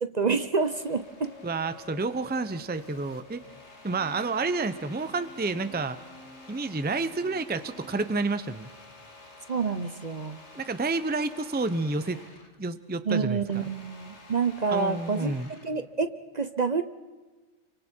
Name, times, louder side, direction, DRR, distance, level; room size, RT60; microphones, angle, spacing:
voice 1, 0.0-1.4 9.5-10.4 13.1-15.3 15.6-16.8, right 5 dB, 40° right, 10 dB, 0.8 m, -28 dB
sound 1, 0.6-12.6 12.9-15.8, left 3 dB, 70° left, 2.6 m, -50 dB
voice 2, 1.4-3.5 3.8-6.0 6.5-8.7 10.5-12.2 12.6-13.6 14.7-15.5, right 3 dB, 10° right, 12 dB, 0.7 m, -30 dB
sound 2, 3.8-9.0, left 1 dB, 35° left, 4.0 m, -52 dB
29.5 x 24.5 x 4.5 m, 1.3 s
omnidirectional pair, 1.2 m